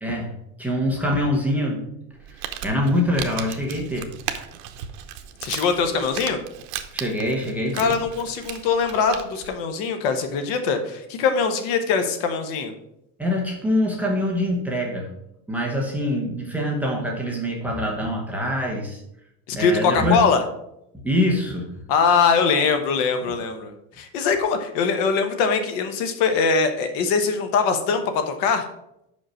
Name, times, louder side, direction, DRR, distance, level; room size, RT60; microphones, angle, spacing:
voice 1, 0.0-0.3 0.6-1.8 2.3-4.1 6.9-7.9 13.2-15.1 15.5-19.0 19.6-20.2 21.0-21.7, left 1 dB, 5° right, -2 dB, 0.8 m, -24 dB
Crumpling crinkling, 2.1-9.5, right 10 dB, 90° right, 0.9 m, -36 dB
voice 2, 5.4-6.4 7.8-12.7 19.5-20.4 21.9-28.6, left 5 dB, 55° left, 7 dB, 1.0 m, -22 dB
5.7 x 5.3 x 6.2 m, 0.81 s
cardioid pair, 180°, 39 cm